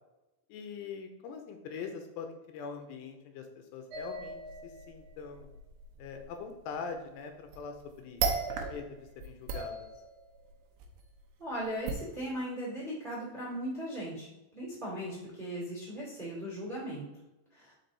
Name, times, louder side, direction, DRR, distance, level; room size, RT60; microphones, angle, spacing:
voice 1, 0.5-5.5 6.0-8.2 8.5-9.9, left 5 dB, 85° left, 5 dB, 2.8 m, -43 dB
sound 1, 3.9-6.3 7.5-7.8 8.2-8.9 9.2-10.4 10.8-10.9 11.9-12.0, right 5 dB, 80° right, 2.0 m, -36 dB
voice 2, 11.4-14.3 14.5-17.0 17.5-17.7, equal, 20° right, -7 dB, 1.4 m, -38 dB
5.9 x 5.2 x 4.0 m, 1.0 s
omnidirectional pair, 5.1 m